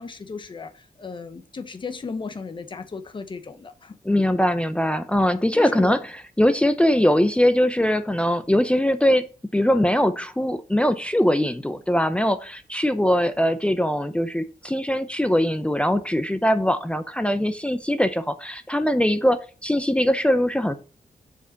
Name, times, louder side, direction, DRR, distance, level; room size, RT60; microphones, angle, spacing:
voice 1, 0.0-4.0 5.5-5.9, left 4 dB, 35° left, 0.9 m, -35 dB
voice 2, 4.0-9.3 9.5-20.7, equal, 10° left, 0.5 m, -21 dB
7.0 x 5.1 x 6.6 m
wide cardioid pair, 175°, 15 cm